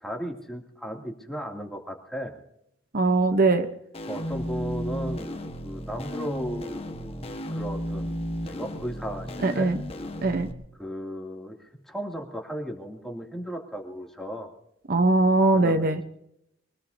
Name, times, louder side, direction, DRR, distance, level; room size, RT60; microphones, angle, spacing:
voice 1, 0.0-2.4 4.1-8.1 8.4-9.7 10.7-14.5 15.5-16.0, equal, ahead, 1 dB, 2.5 m, -36 dB
voice 2, 2.9-3.7 9.4-9.8 10.2-10.5 14.9-16.0, right 2 dB, 50° right, 8 dB, 0.9 m, -21 dB
sound 1, 3.9-10.5, equal, 30° left, 1.3 m, -34 dB
24.0 x 19.5 x 2.7 m, 0.77 s
head